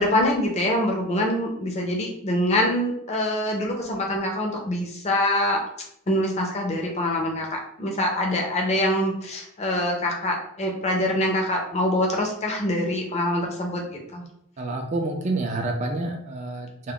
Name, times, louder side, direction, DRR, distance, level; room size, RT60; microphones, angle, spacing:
voice 1, 0.0-5.6 6.1-14.2, left 1 dB, 30° left, 1 dB, 0.5 m, -24 dB
voice 2, 14.6-16.9, right 2 dB, 35° right, 1 dB, 0.3 m, -28 dB
2.3 x 2.0 x 3.5 m, 0.72 s
head